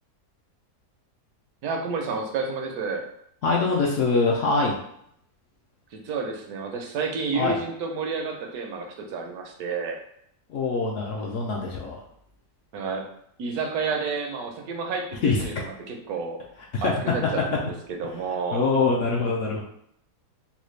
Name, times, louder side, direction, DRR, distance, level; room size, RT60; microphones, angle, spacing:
voice 1, 1.6-3.1 5.9-10.0 12.7-13.0 13.4-16.4 16.8-18.7, right 4 dB, 70° right, 2 dB, 1.1 m, -30 dB
voice 2, 3.4-4.8 7.3-7.6 10.5-12.0 15.2-15.5 16.7-16.9 18.5-19.6, left 3 dB, 70° left, -1 dB, 0.7 m, -24 dB
4.0 x 2.2 x 3.1 m, 0.71 s
omnidirectional pair, 1.7 m